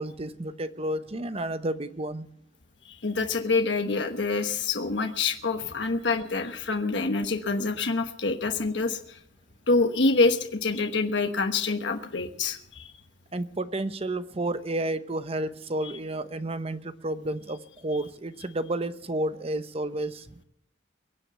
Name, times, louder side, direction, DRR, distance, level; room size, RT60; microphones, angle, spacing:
voice 1, 0.0-2.3 13.3-20.3, right 1 dB, 35° right, 12 dB, 0.8 m, -31 dB
voice 2, 2.8-9.2 9.7-12.9 15.8-15.9, left 3 dB, 70° left, 6 dB, 1.2 m, -26 dB
22.5 x 7.7 x 7.9 m, 0.77 s
head